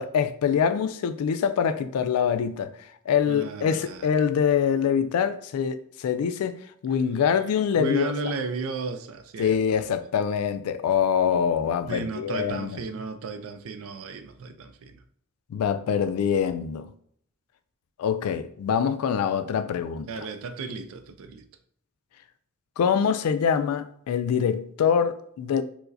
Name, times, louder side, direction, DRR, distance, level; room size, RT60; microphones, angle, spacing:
voice 1, 0.0-6.6 6.8-8.1 9.4-12.8 15.5-16.9 18.0-20.1 22.8-25.6, left 7 dB, 90° left, 0.3 m, -24 dB
voice 2, 3.3-4.1 7.7-9.8 11.9-15.0 20.0-21.4, right 4 dB, 65° right, 0.4 m, -34 dB
4.6 x 2.1 x 2.6 m
head